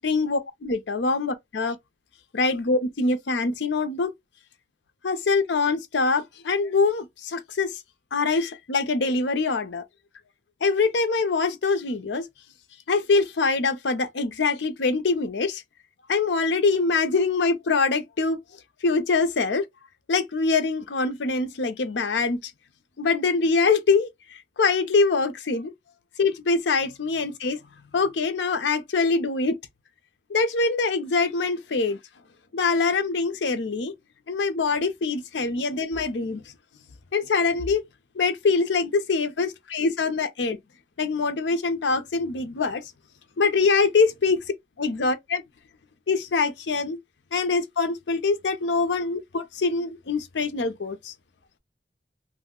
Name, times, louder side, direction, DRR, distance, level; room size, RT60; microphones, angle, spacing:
voice 1, 0.0-1.8 2.3-4.1 5.0-7.7 8.1-9.8 10.6-12.2 12.9-15.6 16.1-18.4 18.8-19.7 20.1-22.5 23.0-25.7 26.2-27.6 27.9-29.6 30.3-32.0 32.5-33.9 34.3-36.4 37.1-37.8 38.2-40.6 41.0-42.8 43.4-44.4 44.8-45.4 46.1-47.0 47.3-51.1, left 4 dB, 85° left, 0.6 m, -24 dB
2.6 x 2.1 x 3.6 m
head